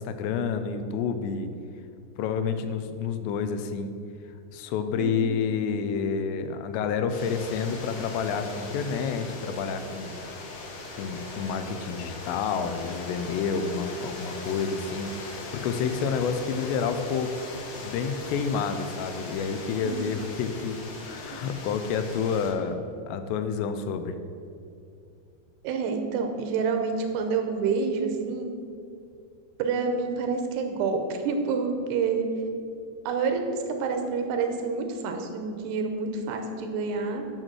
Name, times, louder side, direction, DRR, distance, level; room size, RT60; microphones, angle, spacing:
voice 1, 0.0-1.5 2.2-3.9 4.5-10.5 11.0-17.4 17.8-24.2, left 6 dB, 85° left, 9 dB, 2.8 m, -29 dB
voice 2, 5.0-5.4 19.8-20.0 25.6-28.5 29.6-32.3 33.1-37.3, right 5 dB, 80° right, 5 dB, 2.8 m, -28 dB
sound 1, 7.1-22.5, left 2 dB, 70° left, 3.3 m, -39 dB
9.1 x 6.4 x 6.1 m, 2.5 s
omnidirectional pair, 5.0 m